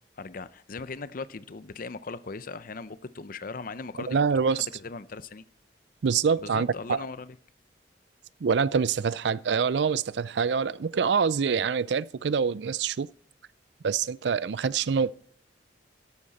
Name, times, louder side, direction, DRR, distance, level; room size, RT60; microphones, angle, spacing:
voice 1, 0.2-5.4 6.4-7.4, left 4 dB, 50° left, 0.7 m, -39 dB
voice 2, 4.1-4.7 6.0-7.1 8.4-13.1 13.8-15.1, right 6 dB, 70° right, 0.4 m, -25 dB
13.0 x 11.5 x 4.1 m
head